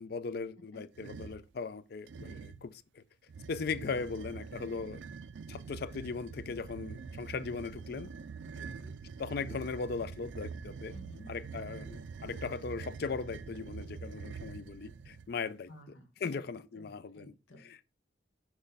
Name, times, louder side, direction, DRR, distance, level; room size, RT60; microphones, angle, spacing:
voice 1, 0.0-3.0 3.5-5.0 5.5-8.1 9.2-10.9 11.3-15.7 16.2-17.3 17.6-17.8, left 4 dB, 55° left, 0.4 m, -38 dB
sound 1, 0.9-1.5 2.1-2.7 3.3-15.3, right 5 dB, 75° right, 0.4 m, -45 dB
voice 2, 8.5-9.0 10.9-11.4 15.7-16.1 16.3-16.4 16.7-17.6, equal, 90° left, 1.3 m, -53 dB
6.1 x 3.2 x 5.3 m
head